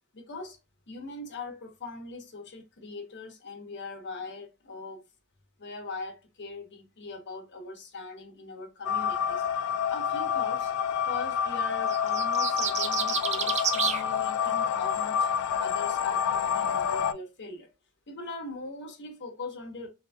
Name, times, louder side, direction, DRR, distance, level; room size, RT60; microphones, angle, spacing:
voice 1, 0.1-0.6 0.9-5.0 5.6-9.5 9.9-10.7 11.1-15.3 15.6-17.7 18.1-19.9, left 3 dB, 50° left, 0.9 m, -41 dB
sound 1, 8.8-17.1, left 8 dB, 90° left, 0.3 m, -28 dB
sound 2, 11.9-14.0, right 7 dB, 30° right, 0.4 m, -29 dB
2.8 x 2.6 x 2.2 m
head